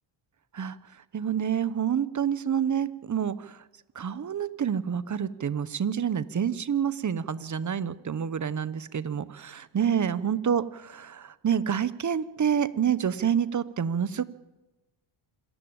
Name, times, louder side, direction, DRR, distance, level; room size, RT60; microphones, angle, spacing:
voice 1, 1.1-3.6 3.9-14.2, right 8 dB, 35° right, 15 dB, 1.0 m, -28 dB
26.5 x 14.5 x 8.9 m, 1.1 s
cardioid pair, 105°, 49 cm